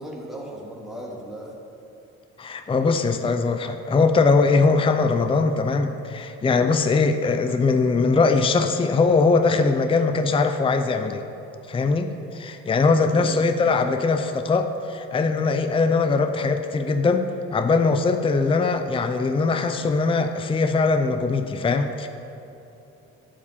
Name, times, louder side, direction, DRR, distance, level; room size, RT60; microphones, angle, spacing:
voice 1, 0.0-1.5 13.1-13.4 18.5-18.6, right 1 dB, ahead, -3 dB, 2.4 m, -37 dB
voice 2, 2.4-11.2 11.7-17.3 17.5-22.1, left 4 dB, 20° left, 7 dB, 0.5 m, -21 dB
11.5 x 5.0 x 7.1 m, 2.9 s
cardioid pair, 85°, 30 cm